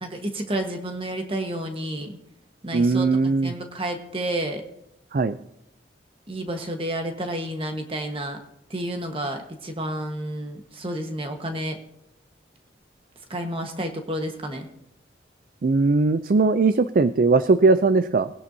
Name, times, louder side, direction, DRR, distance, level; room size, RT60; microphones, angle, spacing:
voice 1, 0.0-2.2 2.6-4.6 6.3-8.4 8.7-11.8 13.3-14.7, right 1 dB, 30° right, 4 dB, 1.4 m, -30 dB
voice 2, 2.7-3.5 5.1-5.4 15.6-18.3, right 3 dB, 50° right, 12 dB, 0.4 m, -19 dB
20.0 x 10.5 x 2.8 m, 0.84 s
head